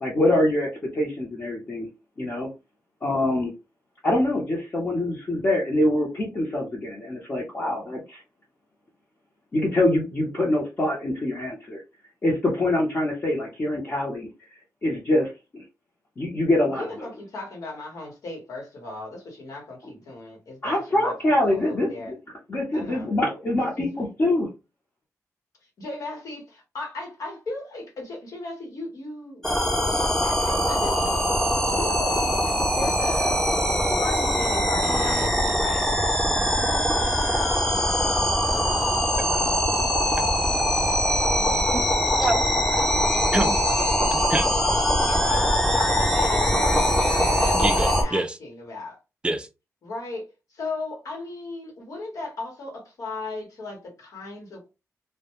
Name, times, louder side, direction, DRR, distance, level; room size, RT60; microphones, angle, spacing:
voice 1, 0.0-1.9 2.2-2.5 3.0-3.5 4.0-8.2 9.5-11.8 12.2-14.3 14.8-15.6 16.2-16.9 20.6-22.1 22.5-24.5, left 1 dB, 40° left, 0.7 m, -24 dB
voice 2, 16.7-22.1 22.7-23.1 23.6-23.7 24.0-24.1 25.8-33.5 33.9-35.9 36.9-37.2 37.7-38.8 41.4-41.7 45.7-49.0 49.8-50.2 50.5-54.7, left 2 dB, 80° left, 1.0 m, -36 dB
sound 1, 29.4-48.0, equal, 10° left, 0.7 m, -22 dB
voice 3, 34.8-35.3 39.2-39.4 40.5-40.6 41.7-41.8 42.2-42.9 43.3-43.7 44.1-44.5 44.9-45.4 47.5-48.4 49.2-49.5, right 2 dB, 15° right, 0.3 m, -28 dB
2.2 x 2.1 x 2.9 m
wide cardioid pair, 110°, 6 cm